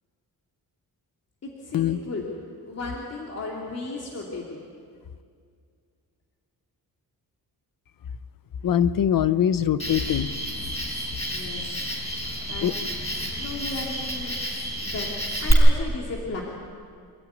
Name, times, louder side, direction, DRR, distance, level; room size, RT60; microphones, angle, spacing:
voice 1, 1.4-2.3 2.6-4.6 11.2-12.0 12.5-12.8 13.4-14.4 14.8-15.1 15.4-16.4, left 3 dB, 40° left, -2 dB, 2.8 m, -35 dB
voice 2, 8.6-10.3 12.6-12.7, left 9 dB, 60° left, 14 dB, 0.8 m, -22 dB
Cricket, 9.8-15.5, equal, 15° left, 5.2 m, -29 dB
26.0 x 14.0 x 9.5 m, 2.2 s
wide cardioid pair, 130°, 38 cm